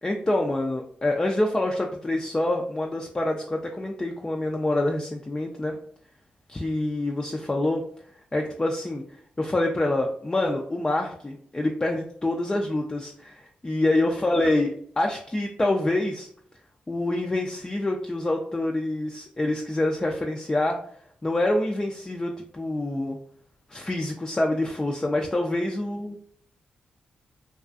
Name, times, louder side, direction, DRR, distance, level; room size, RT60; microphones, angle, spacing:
voice 1, 0.0-5.8 6.5-7.8 8.3-9.0 9.4-16.3 16.9-20.8 21.2-23.2 23.7-26.1, left 1 dB, 20° left, 1 dB, 0.3 m, -26 dB
2.4 x 2.3 x 2.3 m, 0.62 s
cardioid pair, 55°, 3 cm